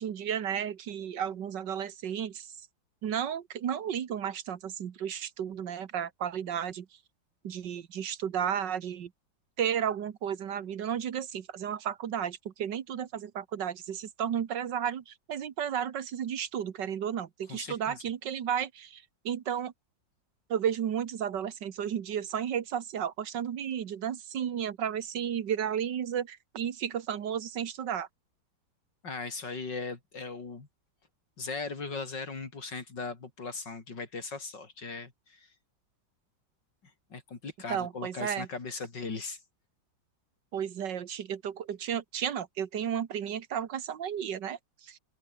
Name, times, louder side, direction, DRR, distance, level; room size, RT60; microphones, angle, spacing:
voice 1, 0.0-2.5 3.0-6.9 7.4-9.1 9.6-19.7 20.5-28.1 37.7-38.5 40.5-45.0, right 9 dB, 65° right, 1.9 m, -33 dB
voice 2, 17.5-18.0 29.0-30.7 31.4-35.5 37.1-39.4, left 4 dB, 65° left, 4.1 m, -38 dB
open air
omnidirectional pair, 2.1 m